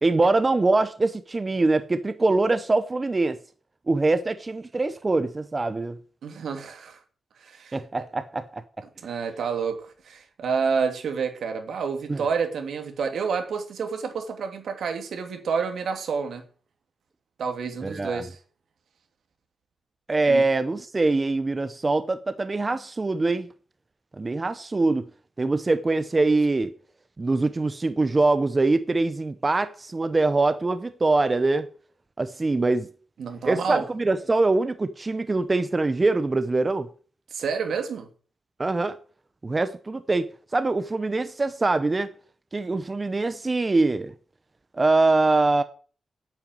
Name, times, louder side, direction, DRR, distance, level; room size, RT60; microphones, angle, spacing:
voice 1, 0.0-3.4 3.9-6.0 7.7-8.6 12.1-12.2 17.8-18.2 20.1-23.5 24.2-25.1 25.4-26.7 27.2-31.7 32.2-32.9 33.4-36.9 38.6-39.0 39.4-40.3 40.5-42.1 42.5-44.1 44.7-45.6, right 3 dB, 20° right, 0.7 m, -23 dB
voice 2, 6.2-7.0 7.4-7.8 9.0-16.4 17.4-18.4 20.3-20.4 33.2-33.9 37.3-38.1, right 5 dB, 70° right, 2.8 m, -29 dB
9.3 x 9.0 x 9.2 m
wide cardioid pair, 170°, 0 cm